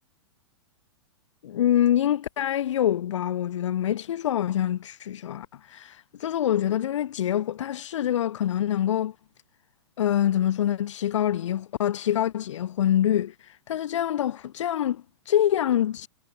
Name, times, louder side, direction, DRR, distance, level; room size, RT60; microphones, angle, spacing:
voice 1, 1.4-9.1 10.0-13.3 13.7-16.1, left 11 dB, 75° left, 0.9 m, -25 dB
hypercardioid pair, 140°, 16 cm